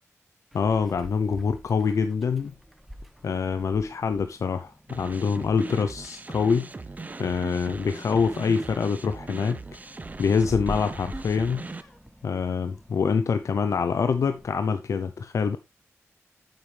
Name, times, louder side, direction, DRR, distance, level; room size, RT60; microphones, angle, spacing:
voice 1, 0.5-2.5 3.2-6.7 7.2-9.6 10.2-11.9 12.2-15.6, left 5 dB, 90° left, 0.6 m, -25 dB
Meow, 0.5-14.5, equal, ahead, 1.1 m, -46 dB
sound 1, 4.9-11.8, right 3 dB, 30° right, 0.7 m, -39 dB
8.9 x 7.7 x 3.4 m
wide cardioid pair, 120°, 5 cm